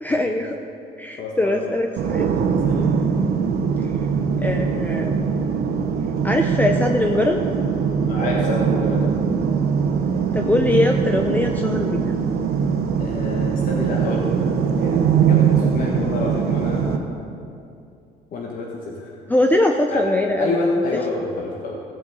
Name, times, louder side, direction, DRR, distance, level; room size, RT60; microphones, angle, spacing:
voice 1, 0.0-0.6 1.0-2.3 3.8-3.9 4.4-5.2 6.2-7.5 10.3-12.1 19.3-20.5, left 1 dB, 10° left, 3 dB, 0.6 m, -21 dB
voice 2, 1.2-1.5 2.6-2.9 8.0-9.1 13.0-17.1 18.3-19.1 19.9-20.0 20.4-21.7, left 3 dB, 55° left, -3 dB, 1.5 m, -28 dB
sound 1, 2.0-17.0, right 6 dB, 70° right, 1.1 m, -21 dB
16.0 x 5.7 x 7.6 m, 2.5 s
cardioid pair, 110°, 17 cm